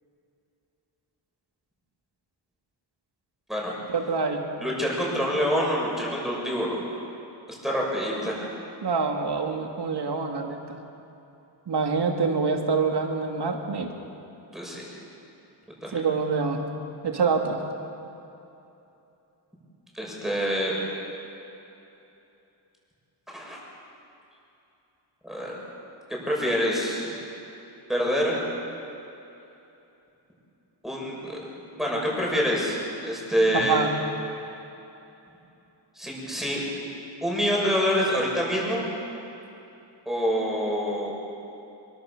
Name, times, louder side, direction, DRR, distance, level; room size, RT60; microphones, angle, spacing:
voice 1, 3.9-4.4 8.8-10.8 11.7-13.9 15.9-16.7 17.0-17.6 33.5-33.9, right 4 dB, 70° right, 2 dB, 2.7 m, -26 dB
voice 2, 4.6-6.8 7.6-8.5 14.5-14.8 15.8-16.0 19.9-20.8 23.3-23.6 25.2-25.6 26.1-27.2 27.9-28.4 30.8-31.4 31.8-32.8 33.0-33.8 36.0-36.6 37.2-38.8 40.0-41.1, equal, ahead, -4 dB, 6.7 m, -26 dB
26.0 x 23.5 x 6.9 m, 2.9 s
wide cardioid pair, 140°, 43 cm